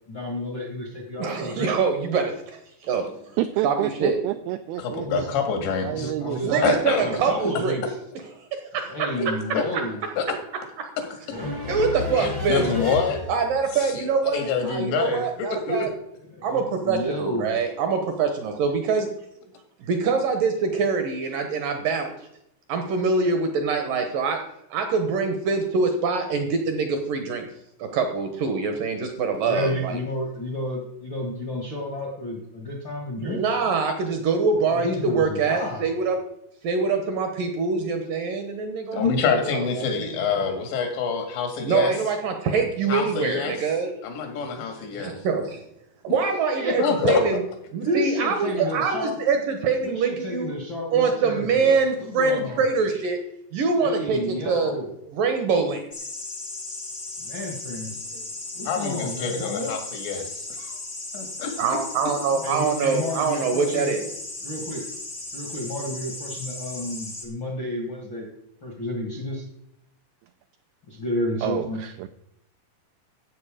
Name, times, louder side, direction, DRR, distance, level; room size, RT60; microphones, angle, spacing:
voice 1, 0.1-1.7 5.0-5.3 5.9-6.7 7.0-7.9 8.8-10.0 11.3-13.2 16.4-17.6 29.5-33.5 34.5-36.0 44.6-44.7 46.3-46.8 47.8-49.1 49.8-52.6 53.8-54.9 57.2-57.9 58.5-59.7 62.4-63.9 64.4-64.9 65.3-68.3 68.6-69.4 70.9-71.8, left 1 dB, 55° left, -1 dB, 1.3 m, -31 dB
voice 2, 1.2-3.4 3.6-4.2 6.4-7.8 8.4-8.5 8.7-9.0 10.8-10.9 11.7-12.7 13.3-15.9 16.4-19.1 19.9-22.1 22.7-24.4 24.7-27.5 27.8-29.9 33.2-36.2 36.6-39.1 39.4-40.2 41.6-43.9 45.0-45.6 46.0-47.4 47.7-50.5 50.9-53.2 53.5-54.8 55.1-55.9 58.1-58.2 61.6-64.0, right 5 dB, 70° right, 5 dB, 2.2 m, -24 dB
voice 3, 3.4-5.1 5.8-7.2 71.4-72.1, right 14 dB, 85° right, 10 dB, 2.2 m, -29 dB
voice 4, 4.8-6.1 6.6-7.0 9.2-9.3 9.5-9.7 10.2-10.3 12.1-13.2 13.7-15.2 15.7-15.9 38.9-41.9 42.9-43.6 44.0-45.1 46.8-47.2 58.7-60.8 61.1-61.5, left 6 dB, 80° left, 4 dB, 4.1 m, -26 dB
sound 1, 55.9-67.2, left 2 dB, 30° left, 0.9 m, -36 dB
13.5 x 8.2 x 5.0 m, 0.78 s
omnidirectional pair, 5.0 m